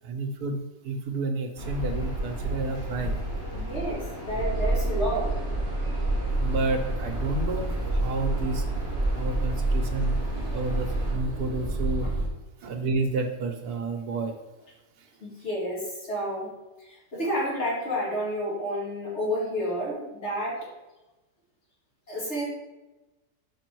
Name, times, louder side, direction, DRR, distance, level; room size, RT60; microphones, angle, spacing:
voice 1, 0.0-3.2 6.4-8.6 9.1-10.2 10.5-12.1 12.6-14.3 15.0-15.1, right 3 dB, 75° right, 5 dB, 1.3 m, -30 dB
sound 1, 1.6-11.1, equal, 90° left, 3.4 m, -36 dB
voice 2, 3.5-5.3 12.0-12.1 15.2-16.5 16.8-20.7 22.1-22.4, equal, 45° left, -5 dB, 2.6 m, -30 dB
sound 2, 4.3-12.3, right 2 dB, 25° right, 1.0 m, -28 dB
5.8 x 5.2 x 4.6 m, 1.1 s
omnidirectional pair, 1.7 m